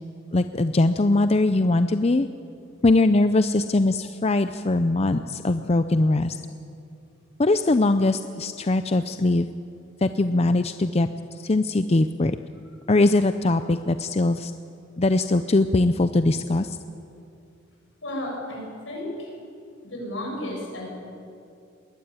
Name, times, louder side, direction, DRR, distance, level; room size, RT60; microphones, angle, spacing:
voice 1, 0.3-2.3 2.8-6.4 7.4-9.5 10.0-11.1 11.3-12.4 12.9-14.5 15.0-16.8, left 2 dB, 30° left, 10 dB, 0.5 m, -21 dB
voice 2, 18.0-19.3 19.8-20.9, left 1 dB, 70° left, -1 dB, 7.9 m, -33 dB
22.0 x 19.0 x 9.0 m, 2.5 s
head